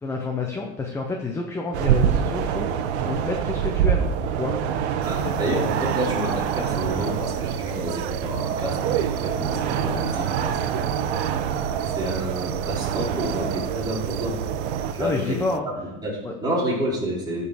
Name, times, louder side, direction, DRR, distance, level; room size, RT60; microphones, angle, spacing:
voice 1, 0.0-4.1 4.3-4.5 5.2-5.4 15.0-15.7 16.2-16.3, left 3 dB, 10° left, 2 dB, 0.9 m, -29 dB
sound 1, 1.7-14.9, right 8 dB, 75° right, 1.3 m, -26 dB
voice 2, 5.0-10.9 11.8-14.4 14.9-17.5, equal, 10° right, -5 dB, 4.0 m, -29 dB
sound 2, 5.0-15.6, right 15 dB, 50° right, 0.5 m, -35 dB
14.5 x 5.5 x 6.4 m, 0.91 s
supercardioid pair, 155°, 33 cm